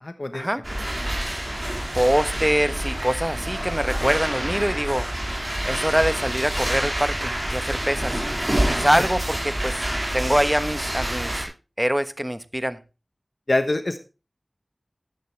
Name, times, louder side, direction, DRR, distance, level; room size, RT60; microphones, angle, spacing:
voice 1, 0.0-0.5 1.0-1.2 13.5-14.0, left 2 dB, 55° left, 8 dB, 1.2 m, -25 dB
sound 1, 0.6-11.4, right 1 dB, 30° right, 4.8 m, -27 dB
voice 2, 1.9-5.1 5.6-8.2 8.7-9.8 10.1-11.5 11.8-12.8, equal, 10° right, 11 dB, 1.1 m, -24 dB
13.5 x 10.0 x 3.4 m, 0.30 s
wide cardioid pair, 50°, 0 cm